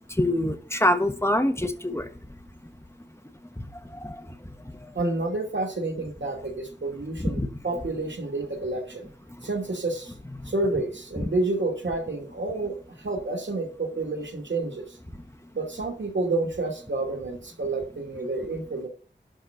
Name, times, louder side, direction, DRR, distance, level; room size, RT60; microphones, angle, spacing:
voice 1, 0.2-2.1 4.0-4.2 7.2-7.5, left 1 dB, 15° left, 8 dB, 1.2 m, -24 dB
voice 2, 4.9-9.1 9.4-10.1 10.4-15.0 15.5-18.9, right 2 dB, 85° right, 3 dB, 2.6 m, -29 dB
11.5 x 4.2 x 7.8 m, 0.40 s
wide cardioid pair, 65°, 19 cm